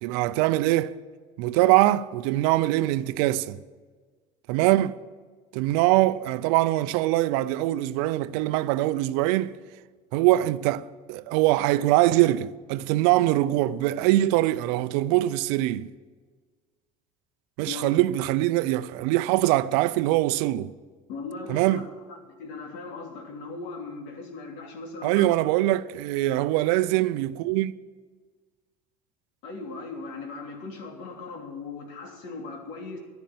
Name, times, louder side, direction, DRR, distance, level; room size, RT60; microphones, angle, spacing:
voice 1, 0.0-1.0 1.4-3.6 4.5-5.0 5.5-9.5 10.1-15.9 17.6-20.7 21.5-21.8 25.0-27.7, right 16 dB, 75° right, 0.6 m, -23 dB
voice 2, 21.1-25.3 29.4-33.0, left 3 dB, 65° left, 3.1 m, -38 dB
11.5 x 10.5 x 7.8 m
supercardioid pair, 85°, 20 cm